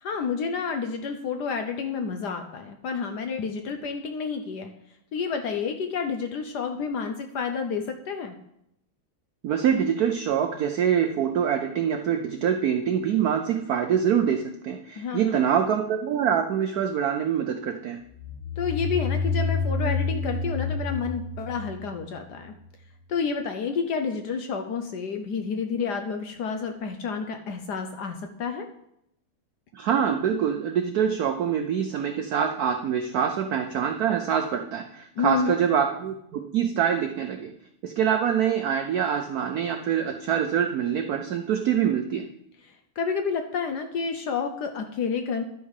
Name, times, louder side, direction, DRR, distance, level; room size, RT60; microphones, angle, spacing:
voice 1, 0.0-4.7 5.1-8.3 15.0-15.4 18.6-22.5 23.1-28.7 35.2-35.6 43.0-45.4, left 5 dB, 70° left, 6 dB, 1.0 m, -29 dB
voice 2, 9.4-18.0 29.7-37.5 37.8-42.3, right 8 dB, 85° right, 6 dB, 0.8 m, -25 dB
sound 1, 18.1-22.7, left 4 dB, 90° left, 1.8 m, -29 dB
11.0 x 5.4 x 4.8 m, 0.77 s
omnidirectional pair, 2.3 m